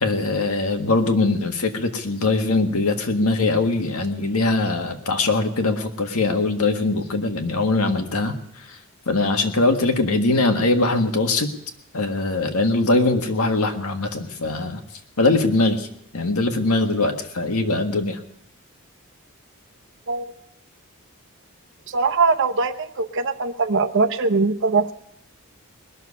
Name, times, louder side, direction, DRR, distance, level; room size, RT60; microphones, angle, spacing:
voice 1, 0.0-8.3 8.7-8.8 9.1-11.5 11.9-14.8 15.2-15.9 16.1-18.2, left 2 dB, 85° left, 5 dB, 1.7 m, -21 dB
voice 2, 21.9-24.9, right 4 dB, 55° right, 8 dB, 0.8 m, -21 dB
20.5 x 6.9 x 9.8 m, 0.79 s
head